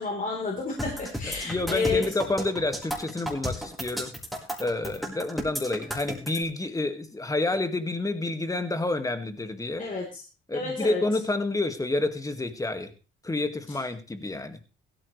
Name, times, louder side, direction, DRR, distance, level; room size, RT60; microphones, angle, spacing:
voice 1, 0.0-2.0 9.8-10.2 10.5-11.0 13.7-13.8, left 4 dB, 40° left, -1 dB, 4.1 m, -30 dB
sound 1, 0.8-6.4, equal, ahead, 4.9 m, -33 dB
voice 2, 1.2-4.1 4.6-9.9 10.5-12.9 13.2-14.6, left 2 dB, 15° left, 8 dB, 2.0 m, -29 dB
16.0 x 13.5 x 3.3 m, 0.32 s
cardioid pair, 90°, 20 cm